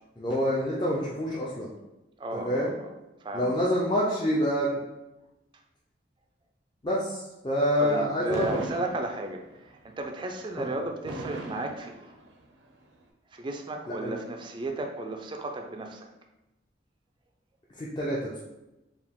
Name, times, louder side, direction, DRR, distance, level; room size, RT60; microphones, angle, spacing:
voice 1, 0.2-1.7 2.4-2.7 3.3-4.8 6.8-8.6 10.6-10.7 14.0-14.1 17.8-18.4, equal, 25° left, -6 dB, 0.5 m, -27 dB
voice 2, 2.2-2.7 3.2-3.5 7.8-12.1 13.3-16.1, right 2 dB, 25° right, 3 dB, 0.4 m, -34 dB
Fireworks, 8.3-9.6 11.0-12.6, right 2 dB, 85° right, 0.6 m, -38 dB
4.7 x 2.4 x 3.5 m, 0.97 s
head